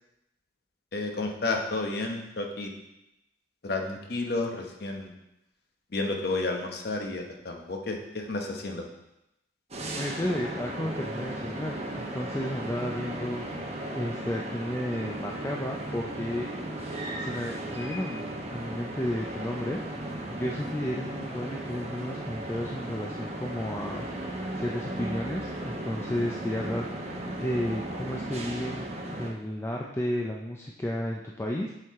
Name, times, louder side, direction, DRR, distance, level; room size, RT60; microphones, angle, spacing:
voice 1, 0.9-2.7 3.6-5.1 5.9-8.9, left 2 dB, 60° left, 2 dB, 0.9 m, -31 dB
sound 1, 9.7-29.3, right 1 dB, 35° right, 0.9 m, -36 dB
voice 2, 10.0-13.5 13.9-16.5 17.2-18.2 18.5-19.8 20.3-24.1 24.5-28.9 29.2-31.7, left 1 dB, 15° left, -1 dB, 0.4 m, -32 dB
7.5 x 4.7 x 3.6 m, 0.88 s
head